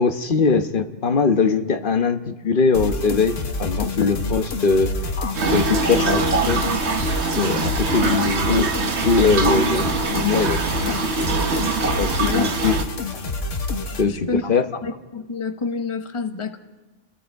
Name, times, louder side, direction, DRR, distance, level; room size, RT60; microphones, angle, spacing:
voice 1, 0.0-4.9 5.5-6.7 7.4-8.7 9.0-11.0 11.3-11.7 12.0-12.7 14.0-14.7, left 4 dB, 45° left, 8 dB, 1.2 m, -21 dB
sound 1, 2.7-14.0, left 2 dB, 85° left, 1.8 m, -28 dB
sound 2, 5.3-12.8, right 3 dB, 65° right, 1.6 m, -23 dB
voice 2, 12.2-12.8 13.8-14.5 14.8-16.6, left 4 dB, 25° left, 7 dB, 1.1 m, -28 dB
29.5 x 21.5 x 4.7 m, 1.2 s
omnidirectional pair, 1.2 m